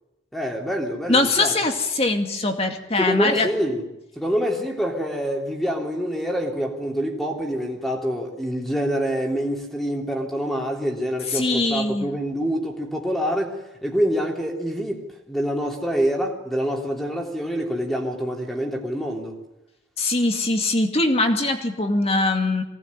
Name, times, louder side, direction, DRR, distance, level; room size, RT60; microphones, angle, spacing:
voice 1, 0.3-1.5 3.0-3.9 4.1-19.4, equal, ahead, 1 dB, 3.2 m, -26 dB
voice 2, 1.1-3.5 11.3-12.1 20.0-22.6, left 2 dB, 30° left, 5 dB, 2.3 m, -22 dB
24.0 x 18.5 x 9.7 m, 0.95 s
head